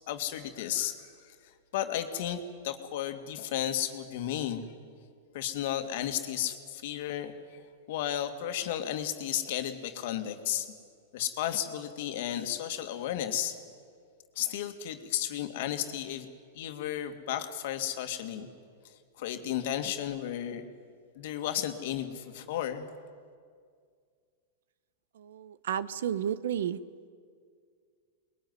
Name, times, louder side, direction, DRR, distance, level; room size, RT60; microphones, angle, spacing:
voice 1, 0.1-4.7 5.3-7.6 7.9-10.7 11.1-13.6 14.4-16.3 16.5-18.5 18.8-20.7 21.2-22.9, left 11 dB, 65° left, 7 dB, 2.2 m, -33 dB
voice 2, 25.2-26.8, right 9 dB, 80° right, 16 dB, 1.0 m, -32 dB
23.5 x 21.0 x 9.7 m, 2.1 s
hypercardioid pair, 135°, 0 cm